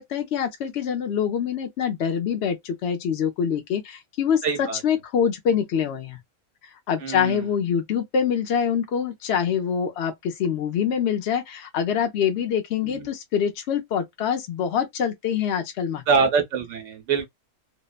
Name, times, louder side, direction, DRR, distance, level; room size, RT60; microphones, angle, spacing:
voice 1, 0.0-6.2 6.6-16.0, left 8 dB, 60° left, 0.7 m, -25 dB
voice 2, 4.4-4.8 7.0-7.4 12.8-13.1 16.1-17.3, right 5 dB, 60° right, 1.2 m, -24 dB
2.8 x 2.0 x 2.3 m
omnidirectional pair, 1.5 m